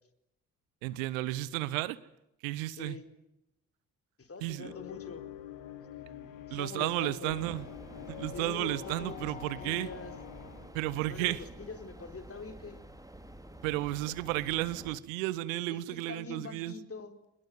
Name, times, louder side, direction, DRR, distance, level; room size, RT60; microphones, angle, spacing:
voice 1, 0.8-2.0 2.4-3.0 4.4-4.7 6.5-7.6 8.1-9.9 10.7-11.4 13.6-16.7, right 17 dB, 75° right, 1.0 m, -33 dB
voice 2, 2.7-3.1 4.2-5.2 6.0-7.5 8.3-9.3 9.6-10.1 10.9-12.8 15.7-17.1, left 4 dB, 35° left, 4.4 m, -44 dB
sound 1, 4.6-10.7, left 10 dB, 80° left, 2.4 m, -46 dB
sound 2, 7.3-15.0, right 1 dB, 10° right, 3.6 m, -49 dB
26.0 x 21.0 x 9.5 m
figure-of-eight pair, 40°, 40 cm